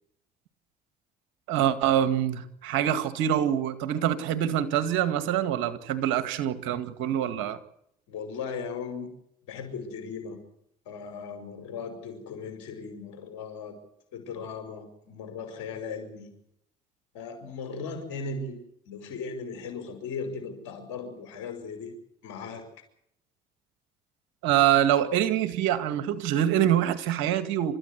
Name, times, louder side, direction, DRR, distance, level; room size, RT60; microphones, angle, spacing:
voice 1, 1.5-7.6 24.4-27.8, right 10 dB, 85° right, 11 dB, 2.0 m, -25 dB
voice 2, 8.1-9.1 9.5-10.4 10.9-13.8 14.1-16.3 17.1-18.6 18.9-21.9 22.2-22.6, left 5 dB, 85° left, 7 dB, 5.7 m, -37 dB
29.0 x 13.5 x 8.3 m, 0.75 s
supercardioid pair, 65°, 19 cm